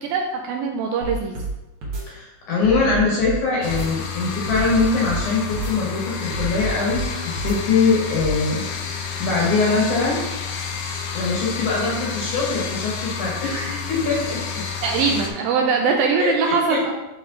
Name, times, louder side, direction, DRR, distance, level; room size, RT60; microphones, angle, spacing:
voice 1, 0.0-1.3 14.8-16.9, right 5 dB, 80° right, 2 dB, 2.2 m, -22 dB
sound 1, 1.0-1.5 1.8-2.0 2.6-3.4 3.7-3.9 4.5-5.2 5.5-5.7 6.3-7.0 7.3-7.6 8.2-8.3, right 3 dB, 55° right, 1.5 m, -29 dB
voice 2, 2.0-8.6 9.2-10.2 11.1-14.6 16.2-16.8, left 4 dB, 60° left, -4 dB, 2.3 m, -22 dB
sound 2, 3.6-15.3, left 6 dB, 90° left, 1.8 m, -30 dB
9.3 x 3.3 x 3.7 m, 1.0 s
omnidirectional pair, 4.5 m